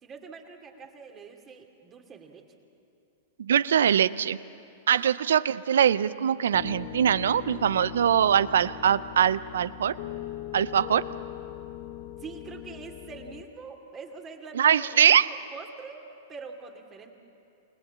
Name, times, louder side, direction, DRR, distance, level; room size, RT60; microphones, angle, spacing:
voice 1, 0.0-2.4 4.9-5.2 12.2-17.1, right 4 dB, 25° right, 3 dB, 2.7 m, -44 dB
voice 2, 3.4-4.4 4.9-9.9 10.5-11.0 14.5-15.3, right 9 dB, 75° right, 18 dB, 0.5 m, -22 dB
Piano, 6.5-13.4, left 13 dB, 50° left, 0.9 m, -40 dB
28.5 x 19.0 x 7.3 m, 2.6 s
hypercardioid pair, 110°, 0 cm